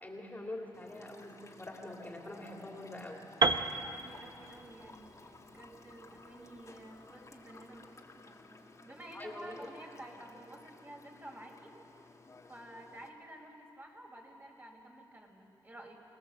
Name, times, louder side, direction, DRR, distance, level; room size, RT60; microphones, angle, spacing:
voice 1, 0.0-3.2 9.1-9.5, left 1 dB, 20° left, 0 dB, 2.9 m, -45 dB
sound 1, 0.7-13.1, left 3 dB, 40° left, 2.0 m, -56 dB
Piano, 3.4-7.3, right 3 dB, 55° right, 0.8 m, -34 dB
voice 2, 3.5-11.8 12.4-16.0, right 1 dB, 25° right, 0 dB, 4.7 m, -51 dB
25.0 x 18.5 x 7.6 m, 2.6 s
cardioid pair, 75°, 8 cm